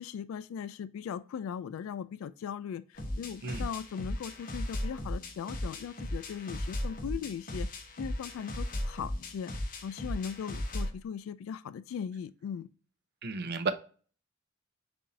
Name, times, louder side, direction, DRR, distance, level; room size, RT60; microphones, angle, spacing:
voice 1, 0.0-7.7 8.0-9.5 9.8-12.7, left 7 dB, 85° left, 0.3 m, -39 dB
sound 1, 3.0-11.0, left 1 dB, 45° left, 0.8 m, -36 dB
voice 2, 13.2-13.7, right 4 dB, 50° right, 0.5 m, -32 dB
6.8 x 2.6 x 2.6 m
head